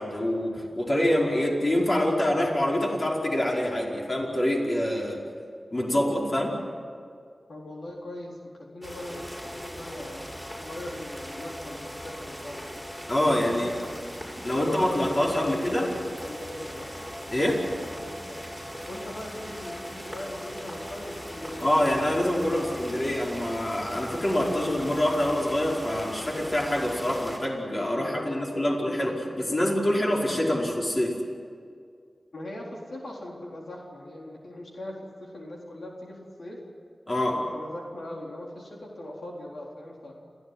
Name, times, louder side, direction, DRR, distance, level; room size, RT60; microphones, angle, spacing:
voice 1, 0.0-5.2 5.7-6.5 13.1-13.8 14.4-15.8 17.3-17.6 21.6-31.1 37.1-37.4, left 1 dB, 40° left, -2 dB, 5.1 m, -25 dB
voice 2, 7.5-9.3 9.5-10.3 10.6-12.6 13.3-13.7 14.6-16.9 17.9-18.4 18.9-23.1 27.9-28.4 28.8-29.0 29.4-29.9 32.3-36.6 37.3-40.1, left 1 dB, 85° left, -2 dB, 4.0 m, -40 dB
sound 1, 8.8-27.4, equal, 5° left, 7.0 m, -39 dB
29.0 x 15.5 x 9.8 m, 2.2 s
wide cardioid pair, 75°, 0 cm